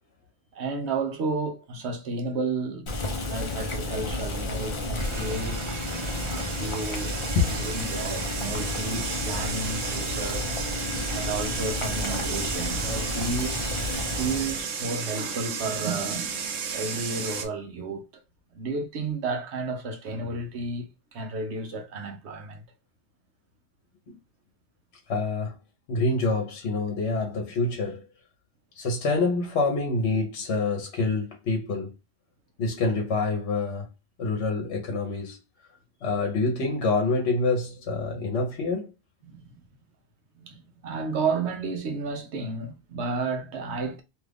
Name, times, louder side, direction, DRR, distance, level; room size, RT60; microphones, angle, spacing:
voice 1, 0.5-2.8 3.3-5.6 6.2-7.1 7.4-10.6 11.1-13.9 14.1-18.2 18.5-22.6 24.1-24.2 39.2-39.6 40.4-44.0, right 3 dB, 65° right, 0.9 m, -32 dB
Boiling, 2.9-14.6, left 2 dB, 40° left, 0.4 m, -32 dB
sound 1, 5.0-17.5, right 6 dB, 90° right, 1.0 m, -33 dB
voice 2, 25.1-25.6 25.9-28.0 28.8-31.9 32.6-33.9 34.2-35.4 36.0-38.9, left 3 dB, 65° left, 1.1 m, -26 dB
2.9 x 2.4 x 3.4 m
omnidirectional pair, 1.3 m